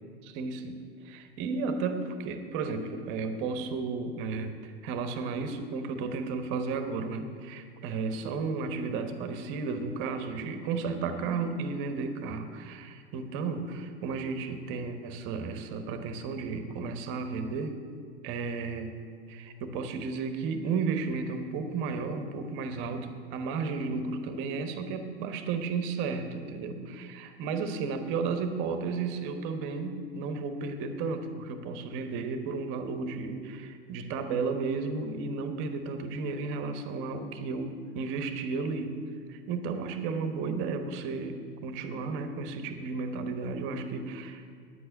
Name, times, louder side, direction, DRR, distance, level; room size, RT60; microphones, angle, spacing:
voice 1, 0.2-17.8 18.2-18.9 19.3-39.0 39.3-44.4, right 4 dB, 40° right, 8 dB, 1.2 m, -33 dB
9.9 x 8.0 x 8.7 m, 2.2 s
figure-of-eight pair, 90°, 31 cm